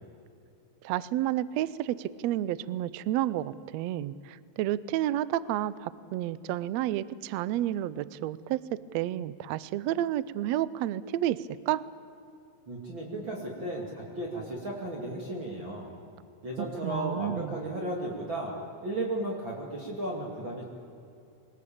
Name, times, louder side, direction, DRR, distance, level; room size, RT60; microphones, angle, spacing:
voice 1, 0.8-8.6 8.9-11.8 16.6-17.6, right 13 dB, 90° right, 18 dB, 1.5 m, -30 dB
voice 2, 12.7-15.9 16.4-18.5 18.8-20.7, right 1 dB, 35° right, -2 dB, 3.0 m, -34 dB
23.0 x 20.5 x 8.7 m, 2.6 s
omnidirectional pair, 3.9 m